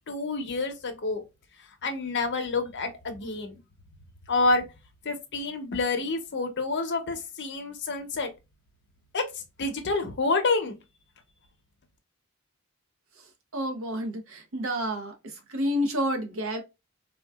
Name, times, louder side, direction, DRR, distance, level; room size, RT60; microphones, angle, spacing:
voice 1, 0.1-1.2 1.8-3.5 4.3-4.6 5.0-8.3 9.1-9.2 9.6-10.8, left 3 dB, 50° left, 0.7 m, -28 dB
voice 2, 13.5-16.6, equal, 65° right, 0.7 m, -30 dB
3.7 x 2.3 x 2.2 m
head